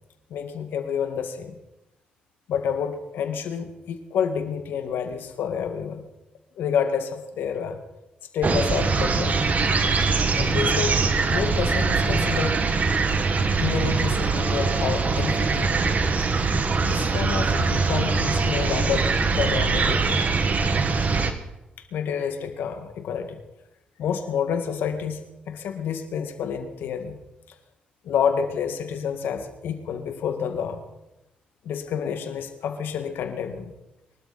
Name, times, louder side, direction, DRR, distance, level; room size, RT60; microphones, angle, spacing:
voice 1, 0.3-1.6 2.5-6.1 6.6-7.8 8.3-9.4 10.3-11.0 11.3-12.7 13.6-15.7 16.8-20.2 21.9-23.4 24.0-27.2 28.0-30.8 31.6-33.7, left 7 dB, 80° left, 7 dB, 1.8 m, -29 dB
sound 1, 8.4-21.3, right 4 dB, 50° right, 1.7 m, -22 dB
24.0 x 12.5 x 4.1 m, 0.96 s
supercardioid pair, 55°, 3 cm